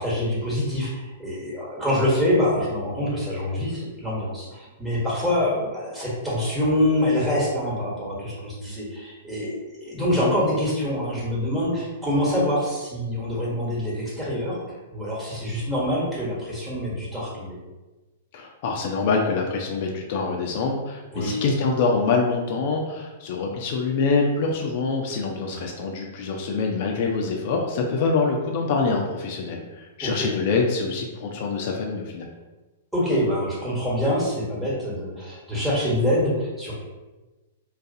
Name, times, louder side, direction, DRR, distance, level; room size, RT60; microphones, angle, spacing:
voice 1, 0.0-14.6 14.9-17.6 21.1-21.4 25.5-25.6 30.0-30.3 32.9-36.8, left 1 dB, 10° right, -7 dB, 1.1 m, -25 dB
voice 2, 18.3-32.3, left 4 dB, 50° left, 1 dB, 0.3 m, -25 dB
2.4 x 2.2 x 2.6 m, 1.2 s
figure-of-eight pair, 105°, 0 cm